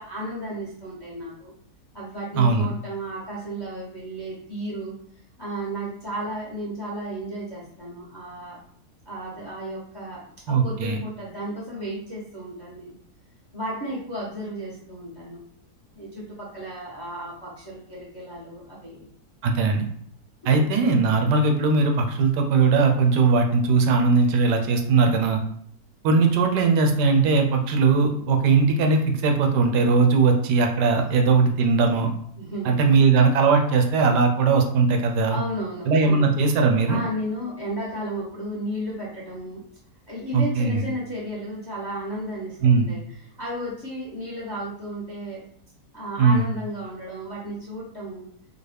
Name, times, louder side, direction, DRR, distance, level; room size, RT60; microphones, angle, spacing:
voice 1, 0.0-1.5 1.9-5.0 5.4-8.6 9.0-12.9 13.5-15.4 15.9-19.1 20.4-20.7 32.4-32.7 35.2-36.3 36.9-39.6 40.1-45.4 45.9-48.3, right 1 dB, 25° left, -5 dB, 0.6 m, -34 dB
voice 2, 2.3-2.7 10.5-11.0 19.4-19.8 20.4-25.4 26.0-32.1 32.6-35.4 35.9-37.0 40.3-40.8 42.6-42.9 46.2-46.5, right 4 dB, 80° right, 3 dB, 1.2 m, -19 dB
3.8 x 2.2 x 3.3 m, 0.62 s
omnidirectional pair, 1.8 m